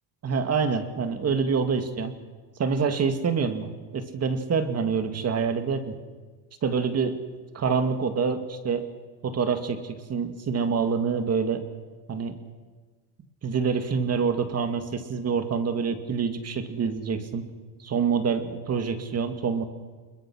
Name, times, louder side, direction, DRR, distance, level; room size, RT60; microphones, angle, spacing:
voice 1, 0.2-2.1 2.6-6.0 6.6-7.2 7.5-8.9 9.2-11.6 12.1-12.3 13.4-17.4 17.8-19.6, right 5 dB, 30° right, 8 dB, 2.2 m, -26 dB
27.0 x 22.0 x 6.3 m, 1.4 s
cardioid pair, 150°, 48 cm